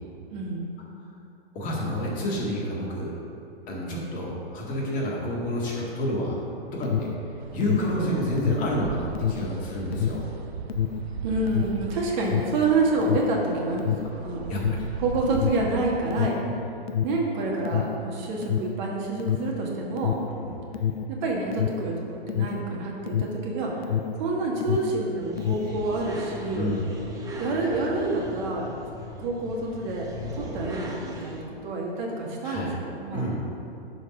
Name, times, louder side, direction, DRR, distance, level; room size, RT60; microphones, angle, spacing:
voice 1, 0.3-0.6 11.2-14.5 15.0-16.4 17.0-20.2 21.1-23.9 24.2-26.7 27.4-28.7 29.2-30.1 30.3-33.3, right 2 dB, 45° right, -2 dB, 1.6 m, -28 dB
voice 2, 1.5-3.1 3.7-6.4 6.7-7.1 7.5-10.3 14.5-14.6 26.5-26.8 32.4-32.7 33.1-33.4, equal, 25° left, -4 dB, 1.9 m, -29 dB
Alarm, 6.5-24.3 24.5-25.8, left 8 dB, 80° left, 0.6 m, -29 dB
sound 1, 7.4-16.0, right 6 dB, 85° right, 0.6 m, -38 dB
sound 2, 25.2-31.4, equal, 10° right, 0.9 m, -38 dB
10.5 x 4.2 x 5.2 m, 2.7 s
hypercardioid pair, 125°, 30 cm